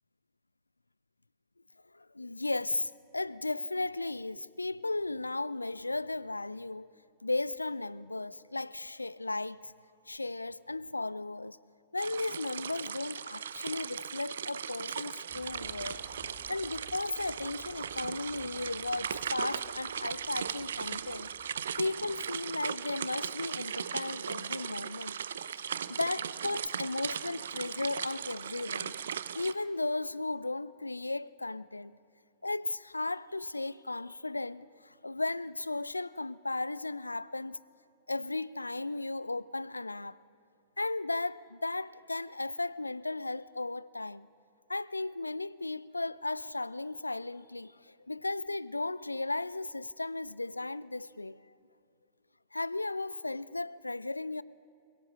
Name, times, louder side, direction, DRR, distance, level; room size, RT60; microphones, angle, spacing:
voice 1, 1.9-6.9 7.2-9.7 10.1-11.6 11.9-16.0 16.5-21.3 21.8-25.2 25.9-29.0 29.3-31.9 32.4-37.6 38.1-40.2 40.8-44.3 44.7-51.4 52.5-54.4, left 2 dB, 85° left, 0.4 m, -35 dB
sound 1, 12.0-29.5, right 8 dB, 65° right, 0.6 m, -38 dB
sound 2, 15.3-23.1, left 5 dB, 25° left, 2.7 m, -57 dB
22.0 x 22.0 x 6.4 m
figure-of-eight pair, 100°, 0 cm